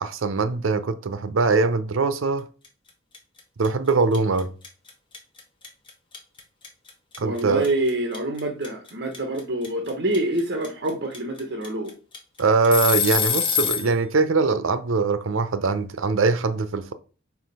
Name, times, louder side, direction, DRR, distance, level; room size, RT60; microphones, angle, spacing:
voice 1, 0.0-2.5 3.6-4.5 7.2-7.7 12.4-16.9, right 4 dB, 80° right, 0.6 m, -22 dB
sound 1, 2.6-2.9 3.1-13.9, left 8 dB, 25° left, 1.2 m, -26 dB
voice 2, 7.2-11.9, right 1 dB, 55° right, 0.9 m, -26 dB
4.8 x 4.0 x 5.4 m
head